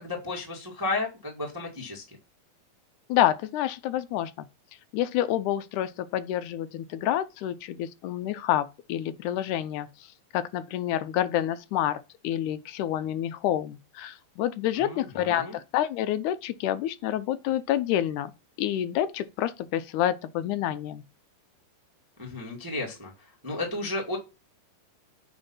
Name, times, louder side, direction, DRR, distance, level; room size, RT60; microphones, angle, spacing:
voice 1, 0.0-2.2 14.8-15.6 22.2-24.2, left 2 dB, 10° right, 0.9 m, -33 dB
voice 2, 3.1-4.5 4.9-9.9 10.3-18.3 18.6-21.0, left 12 dB, 75° left, 1.9 m, -28 dB
8.8 x 3.0 x 5.5 m
omnidirectional pair, 3.9 m